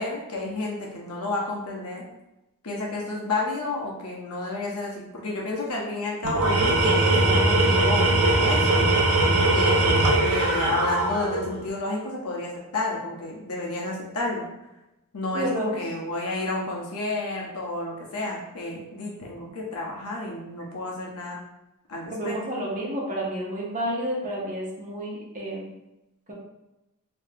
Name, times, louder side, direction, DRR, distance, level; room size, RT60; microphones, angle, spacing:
voice 1, 0.0-2.1 2.6-9.0 9.5-9.9 10.2-14.5 15.1-21.4 21.9-22.4, left 2 dB, 80° left, -2 dB, 1.0 m, -31 dB
Tools, 6.2-11.6, right 2 dB, 70° right, 0.6 m, -21 dB
voice 2, 15.3-15.8 22.1-25.7, right 1 dB, 35° right, -5 dB, 1.2 m, -30 dB
3.1 x 2.8 x 3.5 m, 0.93 s
head